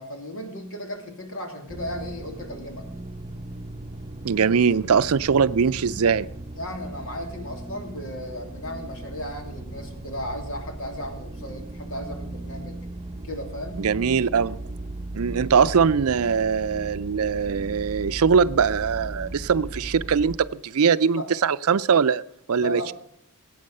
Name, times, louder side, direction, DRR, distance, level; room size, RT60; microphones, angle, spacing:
voice 1, 0.0-2.9 6.5-12.8 13.2-13.8 21.1-21.3 22.5-22.9, equal, 65° left, 2.9 m, -35 dB
sound 1, 1.7-20.4, right 2 dB, 25° right, 0.9 m, -37 dB
voice 2, 4.2-6.3 13.8-14.6 15.1-22.2 22.5-22.9, right 6 dB, 70° right, 0.5 m, -21 dB
20.0 x 9.2 x 6.6 m
head